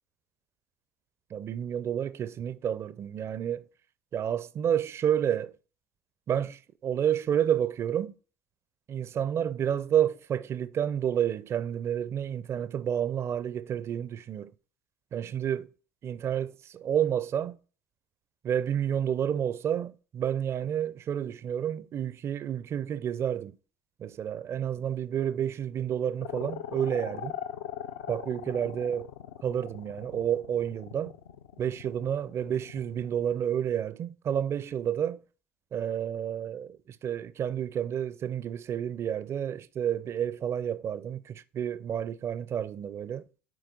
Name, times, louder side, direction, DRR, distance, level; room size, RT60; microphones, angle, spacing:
voice 1, 1.3-3.7 4.1-5.5 6.3-8.1 8.9-14.5 15.1-15.7 16.0-17.6 18.4-23.6 24.0-27.4 28.1-29.1 29.4-31.2 31.6-35.2 35.7-43.2, right 9 dB, 35° right, 0.5 m, -30 dB
sound 1, 26.2-33.2, left 9 dB, 70° left, 0.6 m, -40 dB
7.7 x 4.7 x 3.9 m
figure-of-eight pair, 65°, 7 cm